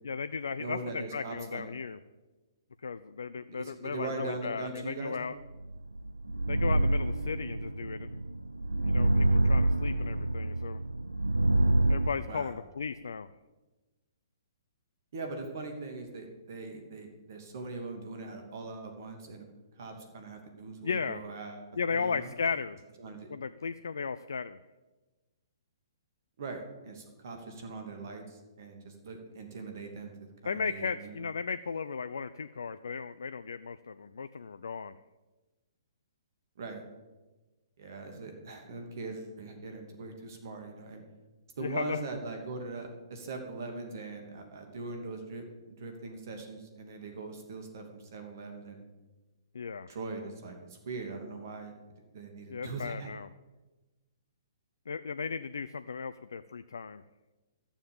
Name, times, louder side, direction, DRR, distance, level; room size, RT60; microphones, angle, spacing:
voice 1, 0.0-2.0 2.8-5.3 6.5-8.2 8.8-10.8 11.9-13.3 20.8-21.2 21.8-22.8 23.3-24.6 30.4-34.9 41.6-42.0 49.5-49.9 52.5-53.3 54.9-57.0, left 5 dB, 65° left, 12 dB, 0.4 m, -35 dB
voice 2, 0.6-1.6 3.5-5.1 12.3-12.5 15.1-19.5 19.8-22.3 23.0-23.3 26.4-30.1 30.4-31.2 36.6-36.8 37.8-41.0 41.6-48.8 49.9-51.7 52.1-53.1, right 3 dB, 55° right, 4 dB, 2.7 m, -41 dB
sound 1, 5.6-12.1, right 2 dB, 85° right, 0.7 m, -27 dB
14.5 x 7.1 x 7.2 m, 1.2 s
figure-of-eight pair, 120°, 2 cm